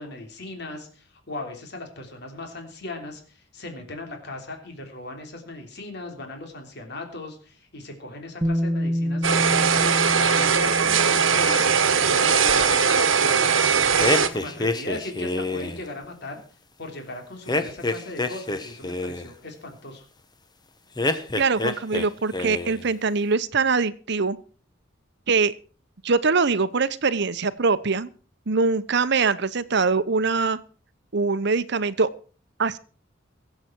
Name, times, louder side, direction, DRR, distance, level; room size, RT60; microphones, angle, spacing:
voice 1, 0.0-12.7 13.2-16.4 16.8-20.0, left 2 dB, 60° left, 4 dB, 3.3 m, -38 dB
Bass guitar, 8.4-14.5, equal, 15° right, 1.0 m, -30 dB
sound 1, 9.2-14.3, right 6 dB, 85° right, 1.3 m, -20 dB
sound 2, 14.0-15.8 17.5-19.3 21.0-22.1 22.3-22.9, left 2 dB, 20° left, 1.1 m, -27 dB
voice 2, 21.4-24.4 25.3-25.5 26.0-28.1 28.5-30.6 31.1-32.1 32.6-32.8, right 4 dB, 60° right, 14 dB, 0.9 m, -23 dB
23.0 x 7.9 x 4.5 m, 0.39 s
head